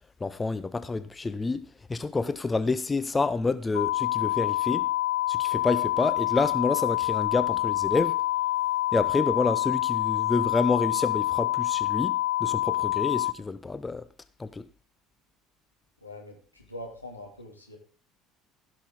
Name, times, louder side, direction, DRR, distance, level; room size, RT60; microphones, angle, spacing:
voice 1, 0.2-4.9 5.3-8.2 8.9-14.0 14.4-14.6, left 3 dB, 20° left, 0.6 m, -28 dB
sound 1, 3.7-13.3, left 16 dB, 70° left, 0.4 m, -27 dB
voice 2, 16.0-17.8, left 1 dB, 90° left, 2.0 m, -43 dB
15.5 x 6.3 x 3.7 m
figure-of-eight pair, 60°, 0 cm